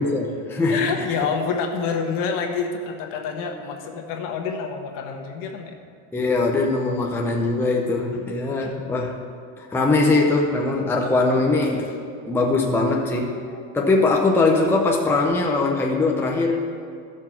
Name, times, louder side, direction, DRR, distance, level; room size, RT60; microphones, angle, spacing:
voice 1, 0.0-0.9 6.1-9.1 9.6-11.9 12.3-16.6, left 3 dB, 5° left, -1 dB, 0.7 m, -21 dB
voice 2, 0.7-5.7 8.6-8.7, left 5 dB, 55° left, 3 dB, 1.4 m, -27 dB
15.0 x 6.2 x 4.4 m, 2.3 s
supercardioid pair, 135°, 40 cm